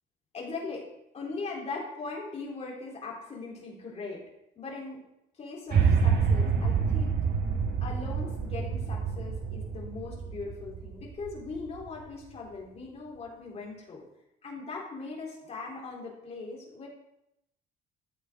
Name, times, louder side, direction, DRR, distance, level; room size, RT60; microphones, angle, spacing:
voice 1, 0.3-0.9 1.1-4.2 4.6-5.0 5.3-7.2 7.8-14.0 14.4-16.9, left 3 dB, 30° left, -3 dB, 4.1 m, -40 dB
sound 1, 5.7-11.9, right 6 dB, 50° right, 1.7 m, -27 dB
14.5 x 8.3 x 4.0 m, 0.83 s
cardioid pair, 145°, 20 cm